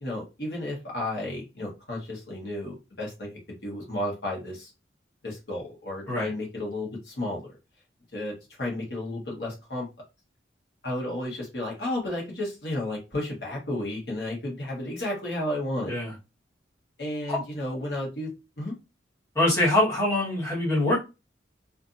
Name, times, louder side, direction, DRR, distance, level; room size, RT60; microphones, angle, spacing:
voice 1, 0.0-4.7 5.2-7.6 8.1-9.9 10.8-15.9 17.0-18.7, left 1 dB, 60° left, -2 dB, 1.1 m, -33 dB
voice 2, 19.3-21.0, left 1 dB, 15° left, -6 dB, 1.0 m, -24 dB
2.6 x 2.5 x 2.5 m, 0.27 s
head